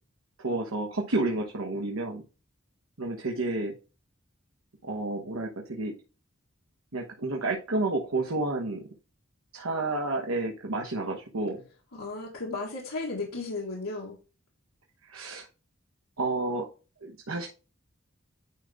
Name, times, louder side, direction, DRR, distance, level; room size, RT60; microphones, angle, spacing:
voice 1, 0.4-2.2 3.0-3.7 4.8-6.0 6.9-8.8 9.5-11.6 15.1-15.5 16.2-16.7 17.0-17.5, right 2 dB, 85° right, 1 dB, 1.1 m, -30 dB
voice 2, 11.9-14.2, left 3 dB, 90° left, -4 dB, 1.7 m, -34 dB
10.0 x 3.9 x 3.5 m, 0.32 s
head